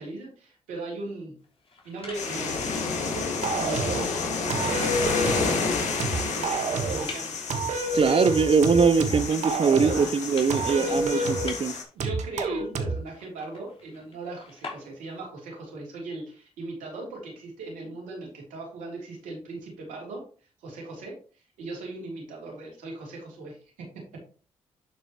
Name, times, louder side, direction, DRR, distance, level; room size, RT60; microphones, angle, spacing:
voice 1, 0.0-1.3 1.8-3.2 3.6-7.4 9.8-10.1 10.7-20.2 20.6-23.9, right 2 dB, 80° right, 3.2 m, -39 dB
sound 1, 1.4-15.3, left 3 dB, 50° left, 3.1 m, -48 dB
sound 2, 2.1-11.8, left 4 dB, 65° left, 2.0 m, -30 dB
sound 3, 3.4-4.1 4.5-5.6 6.0-7.1 7.5-10.1 10.5-11.6 12.0-13.0, right 2 dB, 65° right, 1.3 m, -28 dB
voice 2, 7.9-11.7, right 5 dB, 45° right, 0.9 m, -22 dB
11.5 x 4.8 x 3.0 m
hypercardioid pair, 45°, 13 cm